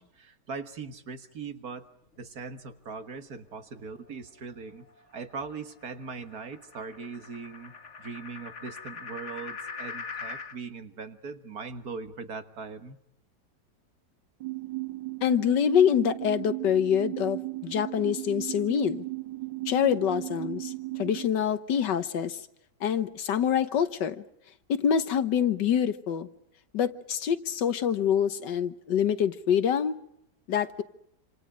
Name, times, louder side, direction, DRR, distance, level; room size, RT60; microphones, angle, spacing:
voice 1, 0.0-1.9 2.2-4.9 5.1-13.0, right 5 dB, 55° right, 8 dB, 1.9 m, -40 dB
sound 1, 3.8-10.6, left 5 dB, 45° left, 1.6 m, -43 dB
sound 2, 14.4-21.3, right 21 dB, 85° right, 2.4 m, -36 dB
voice 2, 15.2-19.0 19.7-20.7 21.0-22.4 22.8-24.2 24.7-26.3 26.7-30.0 30.5-30.8, left 8 dB, 70° left, 11 dB, 1.7 m, -25 dB
27.5 x 27.0 x 5.0 m, 0.77 s
omnidirectional pair, 1.9 m